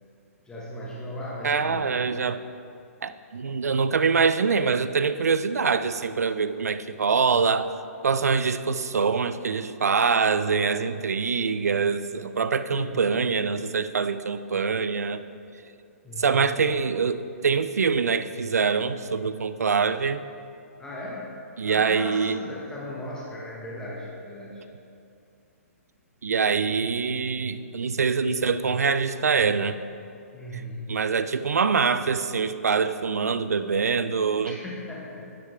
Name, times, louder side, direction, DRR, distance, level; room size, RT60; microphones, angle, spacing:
voice 1, 0.4-1.9 12.7-13.1 16.0-16.7 20.8-21.3 21.6-24.6 30.3-31.0 34.4-35.3, left 1 dB, 10° left, -5 dB, 1.2 m, -37 dB
voice 2, 1.4-2.4 3.0-7.7 8.0-15.2 16.2-20.2 21.6-22.4 26.2-29.8 30.9-34.6, right 5 dB, 85° right, 13 dB, 0.4 m, -24 dB
10.0 x 7.4 x 3.4 m, 2.5 s
hypercardioid pair, 130°, 8 cm